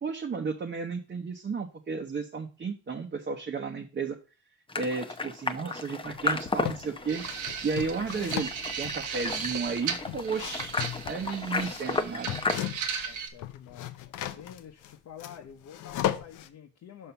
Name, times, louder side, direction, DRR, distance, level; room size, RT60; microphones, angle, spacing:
voice 1, 0.0-4.2 4.7-7.3 7.6-8.5 8.8-10.8 11.0-12.4, right 5 dB, 35° right, 2 dB, 1.0 m, -33 dB
sound 1, 4.7-12.6, left 3 dB, 15° left, 0.7 m, -34 dB
sound 2, 6.1-6.8 7.2-13.0 13.3-16.5, left 12 dB, 85° left, 0.7 m, -36 dB
sound 3, 7.1-13.3, right 6 dB, 80° right, 1.2 m, -36 dB
voice 2, 13.0-13.9 14.3-17.1, left 8 dB, 60° left, 2 dB, 1.0 m, -48 dB
5.5 x 5.4 x 5.8 m, 0.34 s
cardioid pair, 90°, 30 cm